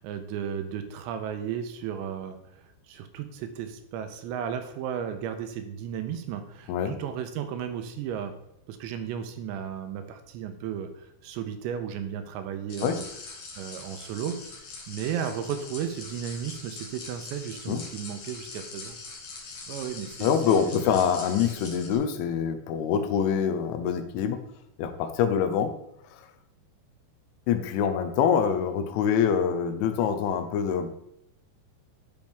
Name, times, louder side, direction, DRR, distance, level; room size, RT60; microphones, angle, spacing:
voice 1, 0.0-8.3 8.7-13.0 13.6-14.4 14.9-19.0 19.7-20.9, right 8 dB, 85° right, 7 dB, 2.8 m, -34 dB
sound 1, 12.7-22.0, left 4 dB, 60° left, 2.4 m, -42 dB
voice 2, 20.2-24.4 24.8-25.7 26.1-26.3 27.5-30.9, left 7 dB, 90° left, 8 dB, 3.2 m, -25 dB
12.0 x 5.3 x 3.5 m, 0.77 s
omnidirectional pair, 5.4 m